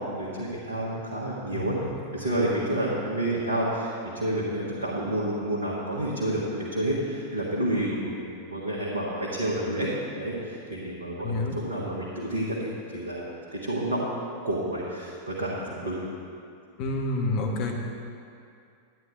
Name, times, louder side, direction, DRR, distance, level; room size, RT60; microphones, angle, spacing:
voice 1, 0.0-1.8 2.1-9.9 10.2-13.2 13.5-14.0 14.4-16.0, right 1 dB, 75° right, -7 dB, 1.4 m, -29 dB
voice 2, 1.5-1.9 11.2-11.5 16.8-17.7, left 2 dB, 40° left, 1 dB, 1.3 m, -28 dB
10.5 x 9.4 x 3.5 m, 2.4 s
figure-of-eight pair, 90°, 0 cm